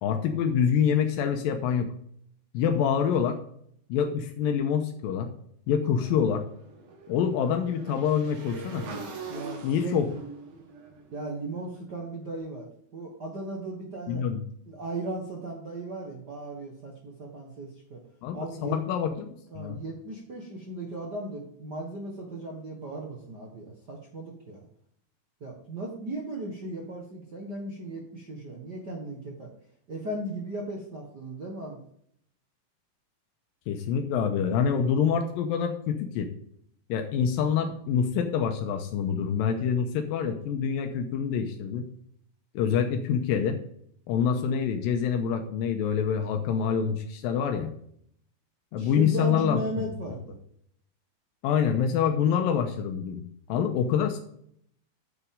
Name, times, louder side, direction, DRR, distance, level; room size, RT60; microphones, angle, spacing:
voice 1, 0.0-1.9 2.5-3.4 3.9-5.3 5.7-6.4 7.1-8.9 9.6-10.1 14.1-14.4 18.2-19.8 33.7-36.3 36.9-41.9 42.5-43.6 44.1-47.7 48.7-49.6 51.4-53.2 53.5-54.2, left 7 dB, 85° left, 5 dB, 2.5 m, -26 dB
Motorcycle / Engine, 5.9-12.1, right 3 dB, 85° right, 3.5 m, -43 dB
voice 2, 9.3-10.0 11.1-12.7 12.9-14.2 14.7-18.0 18.3-18.8 19.5-24.7 25.4-29.5 29.9-31.8 48.8-50.4, right 2 dB, 50° right, -1 dB, 1.2 m, -36 dB
9.6 x 7.3 x 3.7 m, 0.67 s
omnidirectional pair, 4.1 m